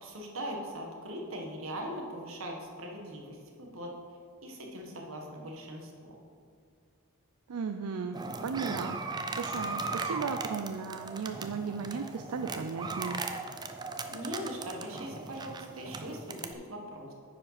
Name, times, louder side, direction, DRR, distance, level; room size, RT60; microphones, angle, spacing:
voice 1, 0.0-3.9 4.4-6.1 14.1-17.1, equal, 65° right, 1 dB, 1.5 m, -40 dB
voice 2, 7.5-13.2, right 5 dB, 85° right, 6 dB, 0.4 m, -36 dB
sound 1, 8.1-16.5, right 3 dB, 20° right, 0.4 m, -38 dB
9.6 x 5.1 x 5.8 m, 2.2 s
head